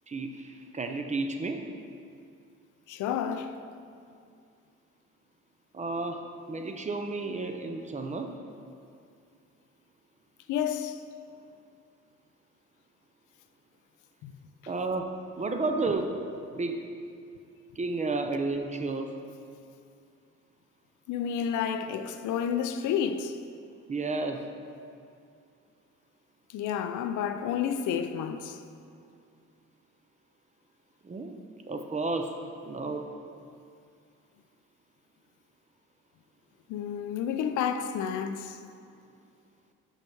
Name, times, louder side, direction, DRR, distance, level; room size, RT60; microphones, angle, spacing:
voice 1, 0.1-1.6 5.7-8.3 14.7-16.2 16.5-16.8 17.8-19.2 23.9-24.5 31.0-31.3 31.7-32.4 32.6-33.0, right 3 dB, 25° right, 0.5 m, -32 dB
voice 2, 2.9-3.6 10.5-11.0 14.2-14.3 21.1-23.4 26.5-28.6 36.7-38.6, left 8 dB, 80° left, 0.5 m, -30 dB
5.7 x 5.4 x 4.6 m
cardioid pair, 90°, 30 cm